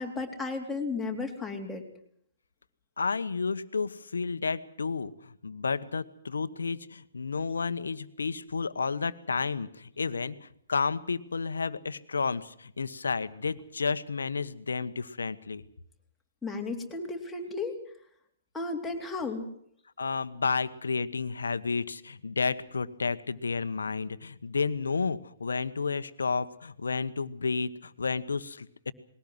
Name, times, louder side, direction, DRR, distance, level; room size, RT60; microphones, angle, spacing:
voice 1, 0.0-1.8 16.4-17.8 18.5-19.5, left 3 dB, 5° left, 0 dB, 3.7 m, -34 dB
voice 2, 3.0-15.6 20.0-28.9, left 4 dB, 80° left, 13 dB, 1.2 m, -31 dB
21.0 x 18.0 x 7.7 m, 0.66 s
hypercardioid pair, 125°, 0 cm